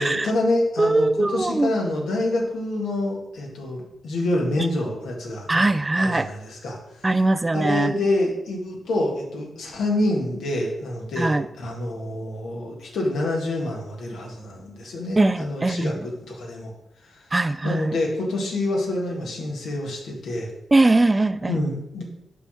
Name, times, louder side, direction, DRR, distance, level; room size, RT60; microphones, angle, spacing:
voice 1, 0.0-5.6 6.0-7.1 7.5-16.7 17.0-17.3 17.6-20.5 21.5-22.0, left 1 dB, 80° left, -1 dB, 1.7 m, -27 dB
voice 2, 0.8-1.7 4.6-4.7 5.5-6.3 7.0-8.0 11.2-11.5 15.2-16.0 17.3-18.0 20.7-21.6, right 2 dB, 25° right, 12 dB, 0.5 m, -21 dB
5.6 x 4.1 x 6.2 m, 0.87 s
supercardioid pair, 50°, 0 cm